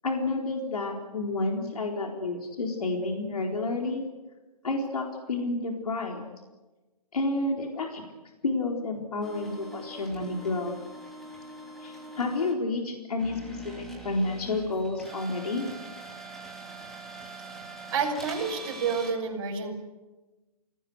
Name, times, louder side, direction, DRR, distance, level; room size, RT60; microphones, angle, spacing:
voice 1, 0.0-4.0 4.6-6.2 7.1-8.0 8.4-10.7 11.8-15.7, left 2 dB, 75° left, 1 dB, 4.4 m, -30 dB
sound 1, 9.2-12.6 13.2-19.1, right 1 dB, ahead, 3.0 m, -43 dB
voice 2, 17.9-19.7, right 5 dB, 40° right, -1 dB, 6.0 m, -29 dB
29.0 x 19.0 x 8.2 m, 1.2 s
hypercardioid pair, 160°, 19 cm